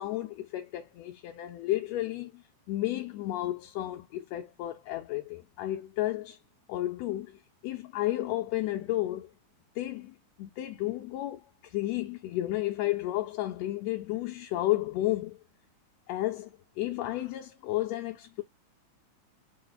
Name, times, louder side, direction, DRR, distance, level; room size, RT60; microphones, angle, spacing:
voice 1, 0.0-6.4 6.7-9.3 9.8-15.4 16.1-18.4, left 15 dB, 75° left, 1.7 m, -32 dB
5.1 x 2.1 x 3.9 m
omnidirectional pair, 3.3 m